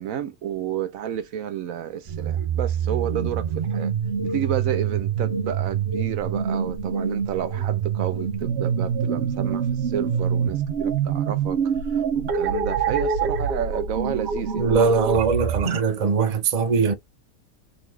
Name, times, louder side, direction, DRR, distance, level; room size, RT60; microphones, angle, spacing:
voice 1, 0.0-3.9 4.2-11.6 11.9-14.7, right 10 dB, 80° right, 1.1 m, -31 dB
sound 1, 2.1-15.8, right 7 dB, 60° right, 0.9 m, -25 dB
voice 2, 14.6-16.9, right 5 dB, 40° right, 0.6 m, -21 dB
4.0 x 2.7 x 3.1 m
omnidirectional pair, 1.4 m